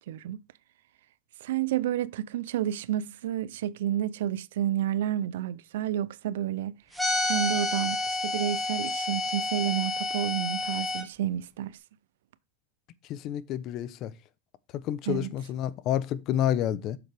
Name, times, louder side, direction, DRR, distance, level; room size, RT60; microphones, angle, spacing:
voice 1, 0.1-0.4 1.4-6.7 7.2-11.8 15.1-15.3, right 11 dB, 85° right, 0.5 m, -30 dB
sound 1, 7.0-11.0, left 2 dB, 5° left, 1.4 m, -29 dB
voice 2, 13.1-14.1 14.7-17.0, left 11 dB, 45° left, 0.7 m, -29 dB
7.9 x 6.8 x 3.4 m
supercardioid pair, 130°, 0 cm